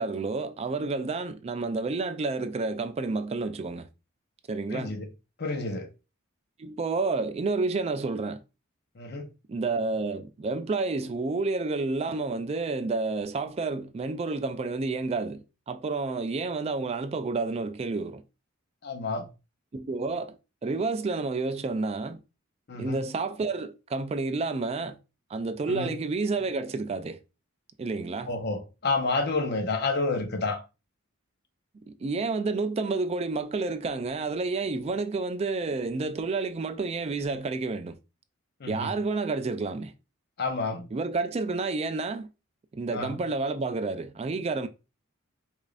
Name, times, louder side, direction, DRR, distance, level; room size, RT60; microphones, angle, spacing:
voice 1, 0.0-3.9 4.5-4.9 6.6-8.4 9.5-18.2 19.7-20.4 20.6-22.2 22.8-25.0 25.3-27.2 27.8-28.3 31.9-38.0 38.7-39.9 40.9-42.3 42.7-44.7, right 3 dB, 30° right, 0.3 m, -30 dB
voice 2, 4.7-5.1 5.4-5.9 9.0-9.3 18.8-19.3 22.7-23.0 25.7-26.0 28.3-30.6 38.6-38.9 40.4-40.9 42.9-43.2, left 3 dB, 50° left, 0.8 m, -29 dB
4.9 x 2.5 x 2.4 m
head